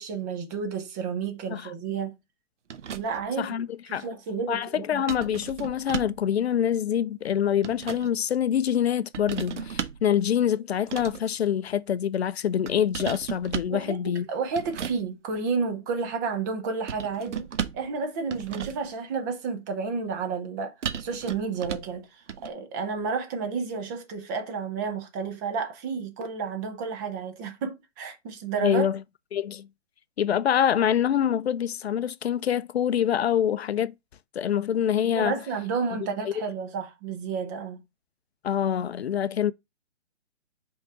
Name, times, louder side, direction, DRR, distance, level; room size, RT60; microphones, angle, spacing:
voice 1, 0.0-2.1 2.9-3.6 3.9-5.0 13.7-17.4 17.7-20.7 21.0-28.9 35.1-37.8, right 5 dB, 15° right, 0.6 m, -31 dB
sound 1, 2.7-3.3 5.1-6.3 7.3-8.1 9.1-10.1 10.8-11.3 12.7-13.8 14.5-15.0 16.9-17.9 18.3-18.9 20.8-22.0 22.3-22.5, right 7 dB, 70° right, 0.9 m, -35 dB
voice 2, 3.4-4.1 4.5-14.3 28.6-29.0 29.3-29.7 30.2-33.9 34.3-35.3 36.3-36.4 38.4-39.5, left 9 dB, 60° left, 0.5 m, -25 dB
5.5 x 3.6 x 4.7 m
hypercardioid pair, 150°, 37 cm